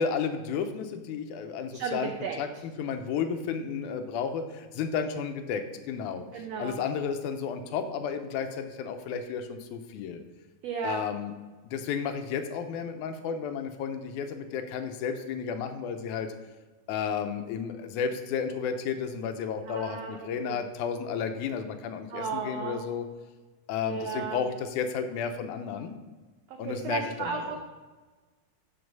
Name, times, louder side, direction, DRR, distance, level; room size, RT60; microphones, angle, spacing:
voice 1, 0.0-2.1 2.4-10.2 10.8-11.3 11.7-16.3 16.9-23.1 23.7-25.9 26.6-27.6, left 6 dB, 80° left, 7 dB, 2.1 m, -32 dB
voice 2, 1.7-2.4 6.3-6.8 10.6-11.0 19.7-20.6 22.1-22.9 23.8-24.4 26.5-27.6, right 6 dB, 75° right, 2 dB, 1.6 m, -34 dB
7.9 x 6.3 x 5.3 m, 1.3 s
omnidirectional pair, 3.6 m